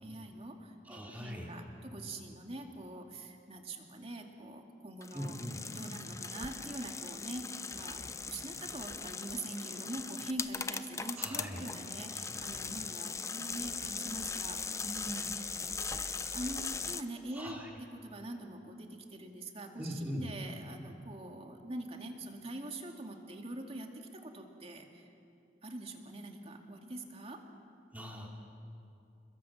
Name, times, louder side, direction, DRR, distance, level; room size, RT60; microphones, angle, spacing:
voice 1, 0.0-5.4 5.7-8.0 8.3-15.4 15.7-17.6 17.9-25.0 25.6-27.4, right 1 dB, 35° right, 3 dB, 2.3 m, -44 dB
voice 2, 0.8-1.5 5.1-5.6 11.2-11.6 17.3-17.7 19.8-20.3 27.9-28.3, equal, 10° right, -1 dB, 3.3 m, -41 dB
sound 1, 5.0-17.0, left 5 dB, 15° left, 0.6 m, -40 dB
28.5 x 21.5 x 7.6 m, 2.6 s
head